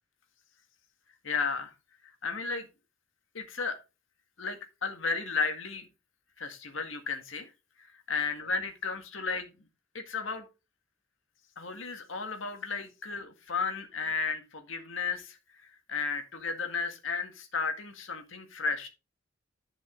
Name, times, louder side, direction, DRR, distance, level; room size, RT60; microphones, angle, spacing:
voice 1, 1.2-1.7 2.2-2.7 3.3-3.8 4.4-5.8 6.4-7.5 7.8-9.5 9.9-10.5 11.6-18.9, left 4 dB, 85° left, 5 dB, 1.8 m, -34 dB
11.0 x 5.5 x 3.8 m, 0.28 s
head